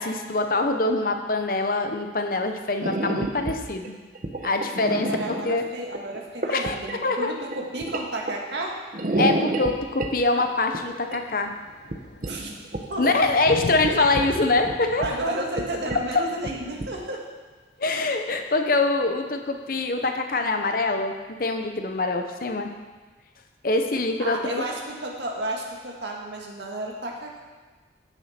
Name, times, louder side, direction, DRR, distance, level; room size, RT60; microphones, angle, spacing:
voice 1, 0.0-4.0 4.4-5.6 6.5-6.7 7.0-7.3 9.2-11.5 13.0-15.1 17.8-22.7 23.6-24.4, left 2 dB, 55° left, 5 dB, 0.9 m, -24 dB
sound 1, 2.8-3.6 3.8-5.5 5.8-7.0 7.5-8.6 8.9-10.1 10.4-10.5 10.7-11.2 11.9-12.0 12.2-13.2 13.5-13.6 13.8-14.3 14.6-15.3 15.6-15.7 15.9-16.0 16.3-16.9, right 1 dB, 50° right, 0.9 m, -29 dB
voice 2, 4.9-8.8 12.2-12.5 12.9-13.1 15.0-17.2 24.2-27.4, right 1 dB, 75° right, 0 dB, 1.9 m, -32 dB
Thunder, 9.1-9.2 10.2-10.3 10.5-17.8 19.5-19.6, left 2 dB, 80° left, 1.0 m, -40 dB
15.0 x 7.2 x 4.5 m, 1.3 s
head